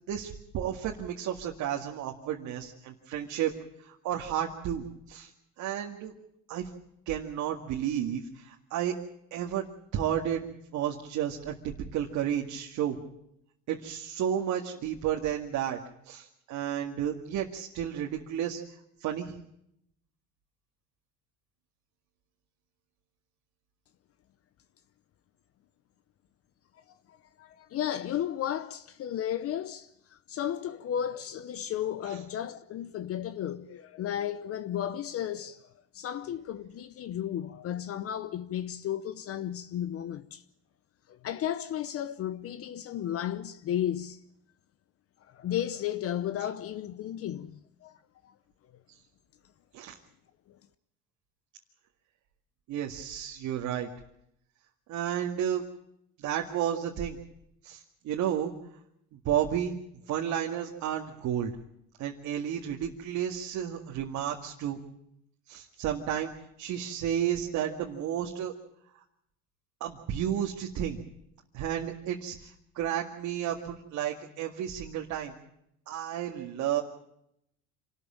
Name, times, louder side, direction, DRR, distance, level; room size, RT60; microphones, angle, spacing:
voice 1, 0.1-3.5 3.8-5.3 5.6-6.1 6.5-6.7 7.1-8.9 9.3-9.7 9.9-13.0 13.7-15.8 16.0-18.6 19.0-19.3 32.1-32.2 49.7-50.0 52.7-53.9 54.9-55.6 56.2-57.2 57.6-58.5 59.2-59.7 60.1-61.5 62.0-64.8 65.5-66.3 66.6-68.5 69.8-71.0 71.5-72.5 72.8-75.3 75.9-76.8, right 10 dB, 60° right, 2.1 m, -32 dB
voice 2, 27.1-35.6 35.9-40.4 41.1-44.2 45.2-48.0 50.5-50.6, left 10 dB, 45° left, 0.8 m, -34 dB
26.5 x 13.5 x 8.8 m
cardioid pair, 120°, 33 cm